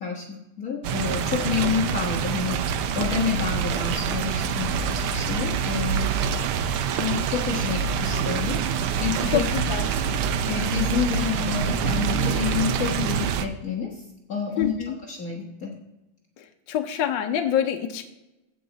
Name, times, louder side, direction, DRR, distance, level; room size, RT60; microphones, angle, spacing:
voice 1, 0.0-2.6 2.9-6.2 7.0-8.6 9.0-9.4 10.5-14.0 14.3-14.7 15.1-15.7, left 6 dB, 45° left, -1 dB, 1.6 m, -28 dB
sound 1, 0.8-13.5, right 7 dB, 85° right, 1.6 m, -26 dB
voice 2, 9.3-9.9 14.6-15.0 16.4-18.0, left 10 dB, 70° left, 5 dB, 1.3 m, -26 dB
15.5 x 5.6 x 4.0 m, 0.98 s
omnidirectional pair, 2.3 m